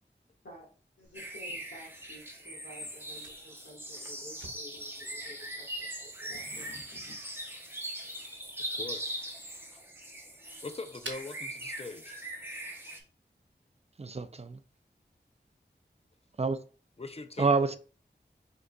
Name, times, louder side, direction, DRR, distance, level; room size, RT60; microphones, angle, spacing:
voice 1, 1.0-5.7 5.9-7.2, equal, 90° left, 1.6 m, -52 dB
Fire, 1.0-12.5, right 2 dB, 90° right, 0.9 m, -54 dB
sound 1, 1.1-13.0, right 1 dB, 10° right, 0.9 m, -41 dB
voice 2, 8.8-9.1 9.7-9.8 10.6-12.2 17.0-17.7, left 3 dB, 35° left, 0.5 m, -42 dB
voice 3, 14.0-14.6 16.4-16.6 17.4-17.8, right 4 dB, 35° right, 0.4 m, -27 dB
5.0 x 3.8 x 2.3 m
wide cardioid pair, 55°, 19 cm